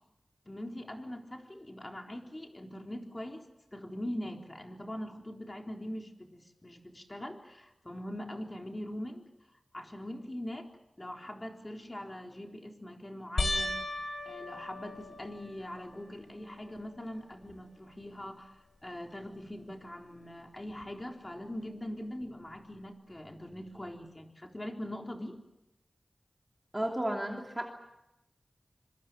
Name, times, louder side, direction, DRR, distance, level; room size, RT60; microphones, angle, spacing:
voice 1, 0.4-3.5 3.7-9.3 9.7-10.7 11.0-13.8 14.3-25.4, left 1 dB, 25° left, 2 dB, 4.0 m, -42 dB
sound 1, 13.4-16.0 16.6-17.2 17.5-17.6 20.8-20.9, left 2 dB, 75° left, 5.9 m, -36 dB
voice 2, 26.7-27.7, right 1 dB, 15° right, 1 dB, 2.9 m, -33 dB
26.0 x 23.0 x 7.8 m, 0.91 s
wide cardioid pair, 75°, 0 cm